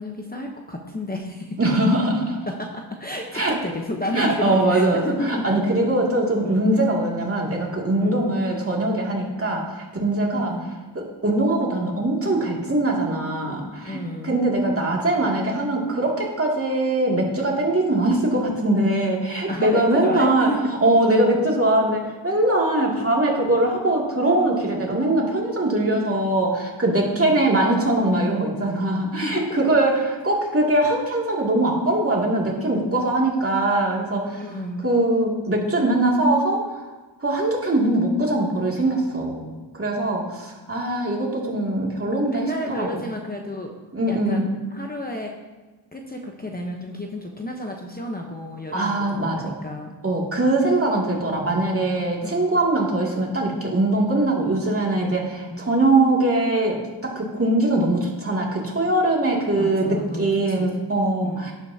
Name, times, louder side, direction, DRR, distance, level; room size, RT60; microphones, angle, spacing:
voice 1, 0.0-1.6 2.6-5.4 6.4-6.7 8.0-8.3 10.3-10.7 13.8-14.3 19.5-20.6 27.0-27.3 29.2-29.4 34.4-34.9 42.2-43.7 44.1-45.3 45.9-49.0 49.3-49.9 52.2-52.5 55.5-55.6 59.5-60.7 61.2-61.5, left 1 dB, 20° left, 1 dB, 1.0 m, -31 dB
voice 2, 1.6-2.4 3.3-3.6 4.1-10.5 10.9-20.5 20.8-34.4 34.8-36.8 37.2-42.9 43.9-44.5 48.7-49.5 50.0-61.5, right 2 dB, 30° right, -2 dB, 2.5 m, -22 dB
11.0 x 10.0 x 2.8 m, 1.2 s
wide cardioid pair, 85°, 44 cm